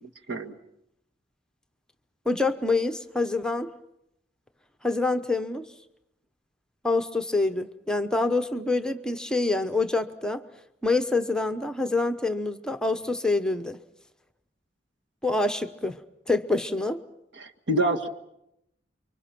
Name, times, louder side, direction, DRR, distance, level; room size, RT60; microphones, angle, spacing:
voice 1, 0.0-0.6 17.4-18.1, right 1 dB, 70° right, 4 dB, 1.9 m, -27 dB
voice 2, 2.3-3.7 4.8-5.7 6.8-10.4 10.8-13.8 15.2-16.0 16.3-17.0, left 3 dB, 5° left, 8 dB, 0.9 m, -26 dB
30.0 x 24.5 x 6.0 m, 0.81 s
head